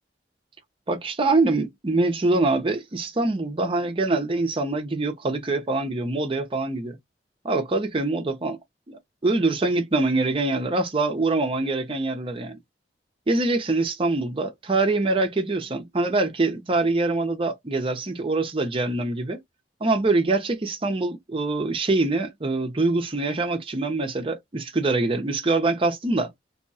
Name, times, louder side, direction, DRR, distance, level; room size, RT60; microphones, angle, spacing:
voice 1, 0.9-7.0 7.4-8.6 8.9-12.6 13.3-19.4 19.8-26.3, right 2 dB, 30° right, 0.6 m, -24 dB
2.7 x 2.2 x 2.6 m
head